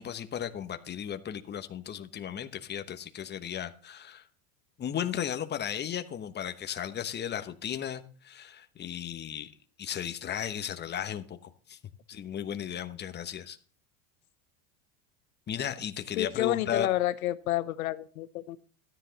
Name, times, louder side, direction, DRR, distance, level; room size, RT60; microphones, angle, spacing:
voice 1, 0.0-4.2 4.8-9.5 9.8-11.8 12.1-13.6 15.5-16.9, left 9 dB, 25° left, 1.0 m, -35 dB
voice 2, 16.2-18.6, left 15 dB, 85° left, 0.9 m, -30 dB
13.0 x 10.0 x 4.0 m
supercardioid pair, 115°, 41 cm